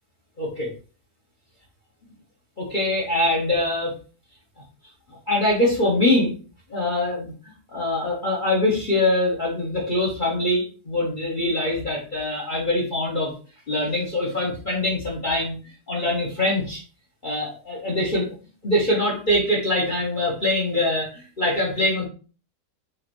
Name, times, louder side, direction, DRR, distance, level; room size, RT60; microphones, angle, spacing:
voice 1, 0.4-0.7 2.6-3.9 5.3-6.3 6.7-7.3 7.7-13.3 13.7-15.6 15.9-16.8 17.2-18.3 18.6-22.0, left 1 dB, 35° left, -3 dB, 1.0 m, -23 dB
5.1 x 2.8 x 3.0 m, 0.37 s
omnidirectional pair, 1.7 m